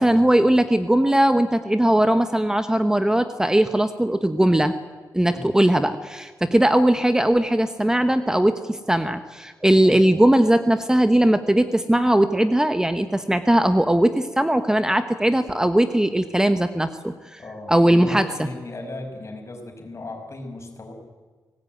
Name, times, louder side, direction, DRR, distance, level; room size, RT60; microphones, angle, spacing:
voice 1, 0.0-4.7 5.1-17.4 17.7-18.5, right 1 dB, 10° right, 9 dB, 1.1 m, -19 dB
voice 2, 9.8-10.2 17.4-20.9, left 2 dB, 45° left, 3 dB, 6.0 m, -36 dB
24.5 x 19.5 x 9.3 m, 1.4 s
wide cardioid pair, 100°, 7 cm